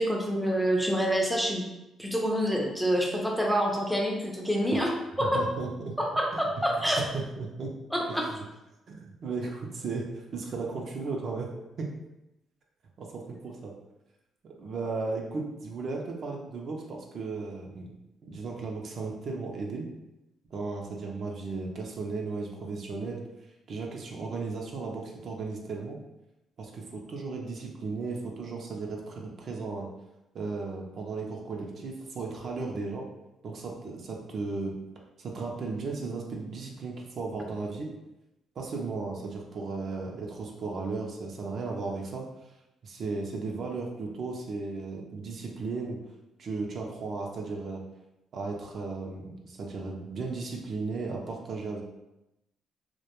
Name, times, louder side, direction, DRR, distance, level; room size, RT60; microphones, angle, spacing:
voice 1, 0.0-1.6 2.0-5.5 6.0-7.0 7.9-8.3, equal, ahead, -1 dB, 0.5 m, -27 dB
voice 2, 5.2-6.0 6.3-6.4 7.4-7.7 8.1-8.3 8.9-11.5 11.8-11.9 13.0-13.7 14.4-17.9 18.2-19.9 20.5-23.2 23.7-26.0 26.6-29.9 30.3-33.0 33.4-34.8 35.2-37.9 38.6-42.2 42.8-46.0 46.4-47.8 48.3-51.8, right 3 dB, 55° right, 0 dB, 0.4 m, -35 dB
2.2 x 2.1 x 2.9 m, 0.94 s
cardioid pair, 95°, 0 cm